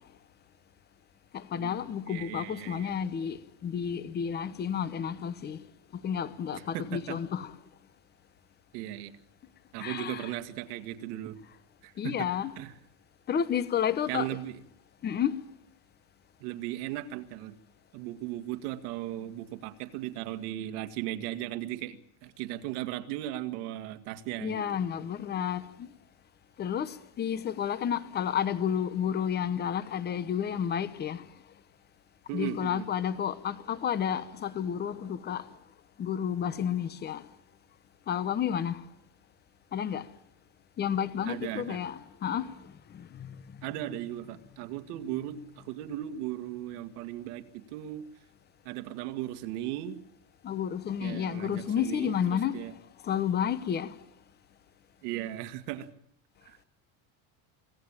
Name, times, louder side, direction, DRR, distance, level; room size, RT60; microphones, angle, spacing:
voice 1, 1.3-3.4 3.6-5.6 6.0-7.5 9.8-10.3 12.0-12.5 13.3-14.3 15.0-15.3 24.4-25.9 26.6-31.2 32.3-35.4 36.0-37.2 38.1-38.8 39.7-40.0 40.8-42.5 43.1-43.4 50.4-52.6 53.0-53.9, left 8 dB, 20° left, 0.9 m, -31 dB
voice 2, 2.1-2.9 6.5-7.2 8.7-9.2 9.7-11.4 11.8-12.3 12.6-12.7 14.1-14.6 16.4-17.6 17.9-24.7 32.3-32.9 41.3-41.8 43.6-48.0 48.7-50.0 51.0-52.7 55.0-55.9 56.4-56.6, right 13 dB, 85° right, 2.2 m, -37 dB
25.5 x 17.0 x 9.0 m
cardioid pair, 165°, 45 cm